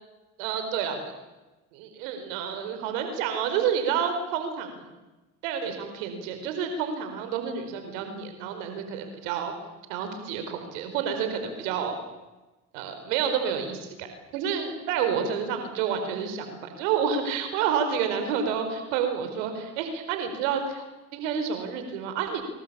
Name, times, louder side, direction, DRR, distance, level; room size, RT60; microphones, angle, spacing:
voice 1, 0.4-1.0 1.7-4.9 5.4-9.5 9.9-12.0 12.7-14.1 14.3-16.5 16.8-20.8 21.1-22.4, right 7 dB, 90° right, 7 dB, 4.7 m, -29 dB
25.5 x 22.5 x 8.7 m, 1.1 s
supercardioid pair, 85°, 37 cm